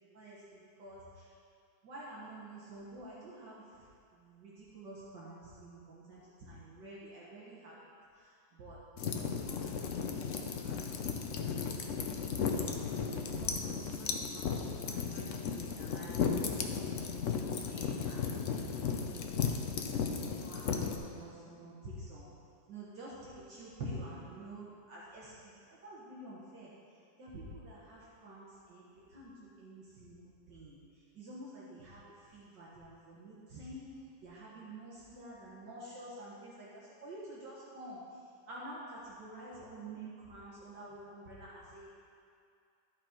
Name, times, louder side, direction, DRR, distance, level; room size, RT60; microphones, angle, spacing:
voice 1, 0.1-1.3 1.8-3.6 4.1-7.8 8.1-12.6 13.2-17.0 17.4-20.2 20.4-20.7 21.0-22.3 22.7-26.7 27.2-30.2 30.5-30.8 31.2-33.9 34.2-38.0 38.5-41.9, right 1 dB, 65° right, -7 dB, 1.9 m, -49 dB
sound 1, 9.0-21.0, left 6 dB, 65° left, 0.7 m, -35 dB
12.5 x 6.0 x 4.4 m, 2.4 s
omnidirectional pair, 2.1 m